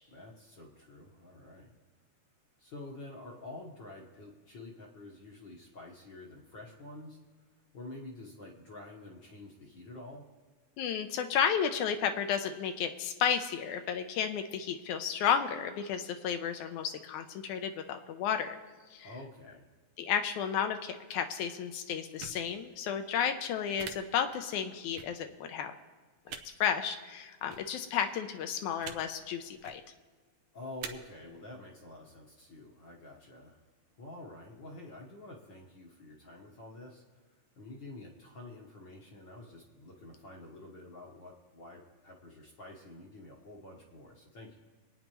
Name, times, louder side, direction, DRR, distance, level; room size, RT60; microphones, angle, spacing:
voice 1, 0.1-1.7 2.6-7.2 7.7-10.3 19.0-19.7 30.5-33.6 34.0-37.2 37.6-44.6, left 2 dB, 55° left, -1 dB, 1.4 m, -48 dB
voice 2, 10.8-18.6 18.9-19.1 20.0-25.7 26.3-29.8, left 8 dB, 80° left, 7 dB, 2.1 m, -32 dB
sound 1, 22.2-22.4 23.8-23.9 25.0-25.1 26.3-26.4 27.5-27.6 28.8-29.0 29.5-29.8 30.8-30.9, right 8 dB, 85° right, 2.2 m, -42 dB
25.0 x 9.3 x 3.0 m, 1.3 s
omnidirectional pair, 3.5 m